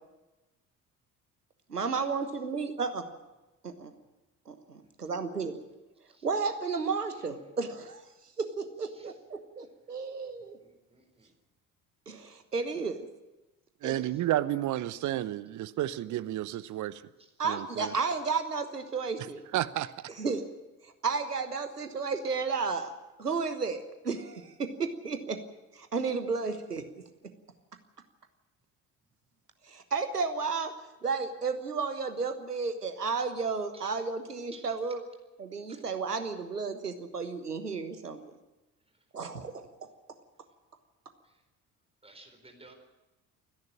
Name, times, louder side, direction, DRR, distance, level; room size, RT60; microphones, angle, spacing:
voice 1, 1.7-3.1 3.6-3.9 4.5-5.6 6.2-8.0 8.4-10.6 12.1-13.1 13.8-14.0 17.4-19.4 20.2-20.4 20.8-22.9 23.2-25.4 25.7-26.9 29.7-30.7 31.0-35.0 35.4-38.2 39.1-39.7, right 4 dB, 85° right, 9 dB, 1.3 m, -33 dB
voice 2, 10.6-11.3 17.9-18.1 20.1-20.2 33.7-33.9 34.5-34.7 35.7-35.8 42.0-42.7, right 2 dB, 15° right, 4 dB, 4.4 m, -54 dB
voice 3, 13.8-17.0 17.4-17.9 19.5-19.9, right 13 dB, 40° right, 15 dB, 0.9 m, -31 dB
28.5 x 10.5 x 8.8 m, 1.1 s
figure-of-eight pair, 55°, 45 cm